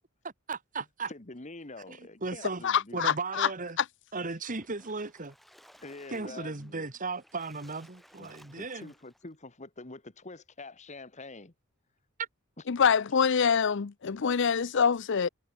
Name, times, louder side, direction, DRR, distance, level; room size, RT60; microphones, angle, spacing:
voice 1, 0.2-1.1 1.9-2.6 2.9-3.8 4.1-5.4 6.1-8.9 12.2-12.3, right 3 dB, 40° right, 1.8 m, -36 dB
voice 2, 1.1-3.0 5.8-6.9 8.2-11.5, left 2 dB, 35° left, 1.6 m, -46 dB
voice 3, 2.6-3.5 3.8-3.9 12.7-15.3, left 6 dB, 60° left, 0.6 m, -25 dB
Splash splatter, 4.4-9.3, equal, ahead, 4.5 m, -60 dB
head